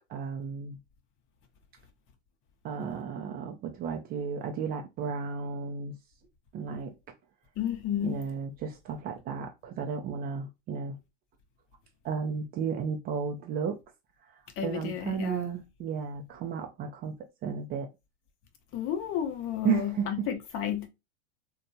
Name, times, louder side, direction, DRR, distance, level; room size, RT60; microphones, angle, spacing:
voice 1, 0.1-0.8 2.6-6.0 6.5-6.9 8.0-11.0 12.0-13.8 14.6-17.2 17.4-17.9 19.6-20.3, right 6 dB, 25° right, 0.4 m, -33 dB
voice 2, 7.6-8.3 14.6-15.5 18.7-20.9, left 10 dB, 35° left, 0.7 m, -32 dB
2.6 x 2.3 x 2.6 m
hypercardioid pair, 105°, 37 cm